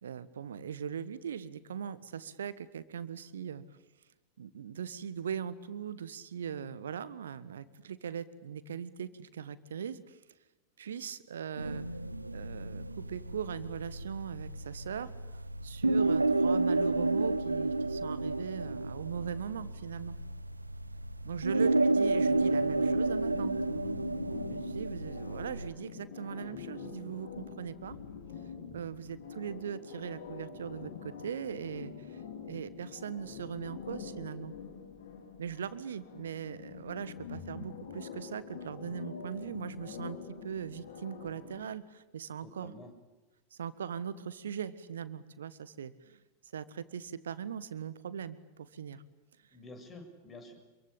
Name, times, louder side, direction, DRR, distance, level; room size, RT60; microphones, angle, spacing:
voice 1, 0.0-3.6 4.4-10.2 10.8-11.9 12.3-15.1 15.6-20.2 21.2-23.6 24.5-28.0 28.7-32.2 32.5-34.5 35.4-40.2 40.4-42.7 43.5-46.2 46.5-49.0, right 8 dB, 65° right, 16 dB, 1.5 m, -40 dB
sound 1, 11.6-25.7, right 2 dB, 80° right, 1.1 m, -31 dB
sound 2, 22.2-41.6, left 6 dB, 60° left, 3.8 m, -45 dB
voice 2, 42.4-42.9 49.5-50.5, left 2 dB, 20° left, 6 dB, 7.3 m, -49 dB
27.0 x 23.5 x 8.7 m, 1.1 s
figure-of-eight pair, 90°, 0 cm